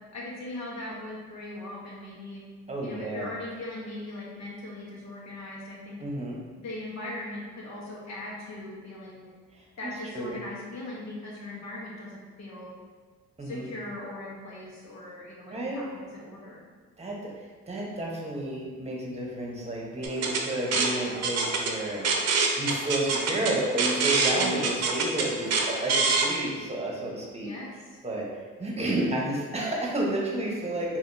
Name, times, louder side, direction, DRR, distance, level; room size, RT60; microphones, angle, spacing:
voice 1, 0.1-2.4 2.8-6.0 6.6-9.3 9.8-12.7 13.4-16.6 24.3-24.8 27.4-28.0, left 1 dB, 60° left, -4 dB, 1.3 m, -39 dB
voice 2, 2.7-3.3 6.0-6.4 9.5-9.6 10.1-10.4 13.4-13.6 15.5-15.8 17.0-17.2 17.7-22.1 22.6-27.5 28.0-28.2 28.6-31.0, right 1 dB, 20° right, -3 dB, 1.1 m, -31 dB
sound 1, 20.0-26.3, right 4 dB, 55° right, 0.7 m, -26 dB
5.0 x 2.8 x 2.7 m, 1.5 s
cardioid pair, 90°, 30 cm